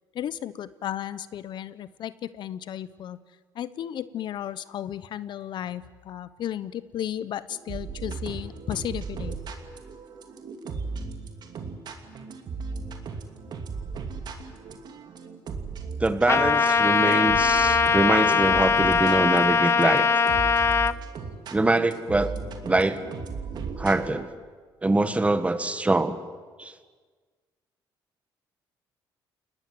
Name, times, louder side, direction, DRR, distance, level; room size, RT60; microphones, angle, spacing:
voice 1, 0.1-3.2 3.5-9.4, left 11 dB, 60° left, 16 dB, 0.8 m, -34 dB
sound 1, 7.5-24.1, right 4 dB, 55° right, 2.7 m, -36 dB
voice 2, 16.0-20.1 21.5-22.3 22.6-23.0 23.8-24.3 24.8-26.2 26.6-26.7, right 2 dB, 15° right, 11 dB, 1.5 m, -24 dB
Trumpet, 16.3-20.9, left 5 dB, 30° left, 0.7 m, -21 dB
29.5 x 20.0 x 7.8 m, 1.5 s
cardioid pair, 105°, 9 cm